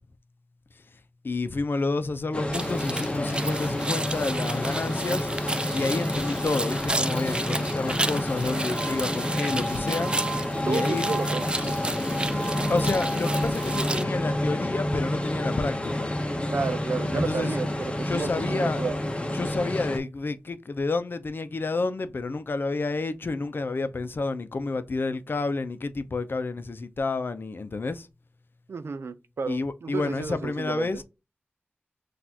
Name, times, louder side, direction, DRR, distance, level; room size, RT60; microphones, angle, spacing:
voice 1, 1.2-5.2 5.7-10.1 10.6-11.0 12.7-16.1 17.1-17.5 18.0-18.8 19.3-28.0 29.5-31.0, left 3 dB, 60° left, 0.6 m, -29 dB
sound 1, 2.3-20.0, left 1 dB, 25° left, 0.7 m, -29 dB
sound 2, 2.5-14.0, right 2 dB, 25° right, 0.4 m, -32 dB
voice 2, 10.5-11.8 16.5-19.0 28.7-31.0, right 5 dB, 90° right, 0.5 m, -32 dB
6.1 x 2.5 x 2.8 m
wide cardioid pair, 75°, 4 cm